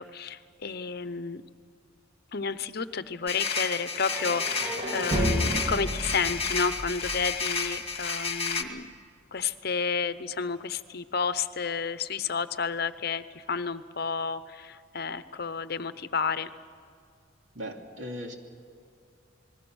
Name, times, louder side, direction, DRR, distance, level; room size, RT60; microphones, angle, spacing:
voice 1, 0.0-1.4 2.3-8.9 9.3-16.5, left 5 dB, 50° left, 12 dB, 0.8 m, -31 dB
sound 1, 3.3-8.6, left 5 dB, 30° left, 1.5 m, -31 dB
sound 2, 4.1-8.0, equal, 30° right, 2.6 m, -32 dB
voice 2, 17.5-18.3, equal, 65° right, 2 dB, 2.7 m, -38 dB
28.0 x 21.0 x 6.3 m, 2.4 s
head